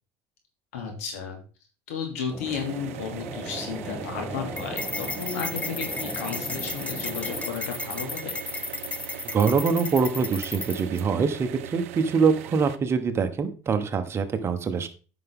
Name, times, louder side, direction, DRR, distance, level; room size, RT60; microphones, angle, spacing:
voice 1, 0.7-1.4 1.9-8.4, left 6 dB, 90° left, 2 dB, 2.8 m, -33 dB
sound 1, 2.3-7.5, equal, ahead, 1.1 m, -38 dB
sound 2, 2.4-12.8, right 13 dB, 90° right, 0.6 m, -40 dB
sound 3, 4.6-11.0, left 3 dB, 15° left, 0.8 m, -34 dB
voice 2, 9.3-14.9, right 5 dB, 35° right, 9 dB, 1.3 m, -24 dB
9.2 x 6.0 x 3.7 m, 0.36 s
supercardioid pair, 90°, 7 cm